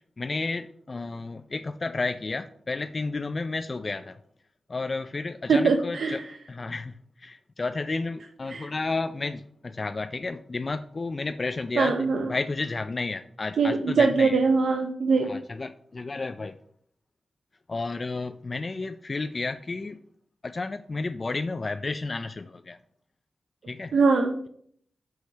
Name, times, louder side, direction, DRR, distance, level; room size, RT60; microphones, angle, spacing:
voice 1, 0.2-4.2 4.7-6.2 6.5-14.4 15.2-16.5 17.7-20.0 20.4-22.8 23.7-23.9, left 3 dB, 35° left, 10 dB, 0.3 m, -32 dB
voice 2, 5.5-6.3 8.5-8.7 11.8-12.3 13.6-15.3 23.9-24.4, right 4 dB, 85° right, 5 dB, 0.6 m, -22 dB
6.2 x 4.8 x 5.6 m, 0.63 s
wide cardioid pair, 105°, 0 cm